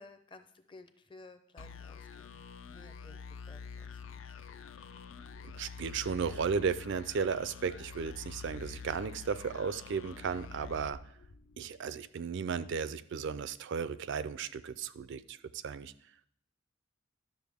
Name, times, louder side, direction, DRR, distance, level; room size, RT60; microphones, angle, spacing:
voice 1, 0.0-3.2 3.5-4.3, left 3 dB, 25° left, 8 dB, 0.6 m, -55 dB
sound 1, 1.6-11.9, left 5 dB, 65° left, 0.5 m, -47 dB
voice 2, 5.4-11.0 11.6-15.4 15.6-15.9, right 6 dB, 60° right, 15 dB, 0.4 m, -35 dB
11.5 x 6.7 x 3.5 m, 0.66 s
head